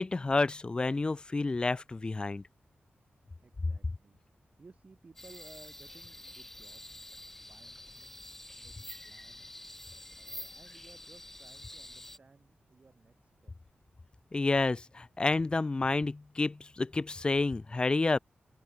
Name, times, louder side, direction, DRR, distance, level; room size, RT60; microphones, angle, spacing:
voice 1, 0.0-2.4 14.3-18.2, left 3 dB, 25° left, 0.7 m, -29 dB
voice 2, 3.4-4.2 4.6-7.1 7.4-9.4 10.1-13.5, right 4 dB, 35° right, 7.6 m, -59 dB
sound 1, 5.2-12.2, left 1 dB, 10° left, 2.0 m, -48 dB
wide cardioid pair, 175°, 4 cm